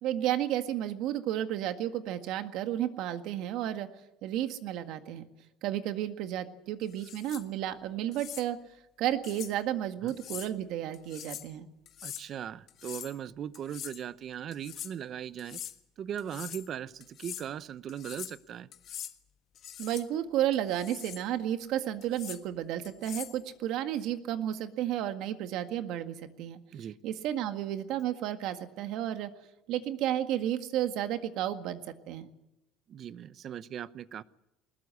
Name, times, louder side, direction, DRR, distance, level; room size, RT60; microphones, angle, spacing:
voice 1, 0.0-3.9 4.2-5.2 5.6-8.6 9.0-11.7 19.8-26.6 27.0-29.3 29.7-32.3, right 11 dB, 60° right, 8 dB, 1.8 m, -32 dB
sound 1, 6.9-7.4 8.1-8.5 9.2-9.5 10.1-10.5 10.9-11.5 11.9-12.2 12.7-13.2 13.5-14.0 14.5-14.9 15.4-15.8 16.2-16.7 17.0-17.5 17.9-18.4 18.7-19.1 19.5-20.1 20.5-21.2 22.0-22.4 22.8-23.4, left 10 dB, 45° left, 1.4 m, -43 dB
voice 2, 12.0-15.6 16.0-18.7 26.7-27.0 32.9-34.2, right 9 dB, 40° right, 16 dB, 0.8 m, -39 dB
20.5 x 20.0 x 8.3 m, 0.89 s
cardioid pair, 145°, 0 cm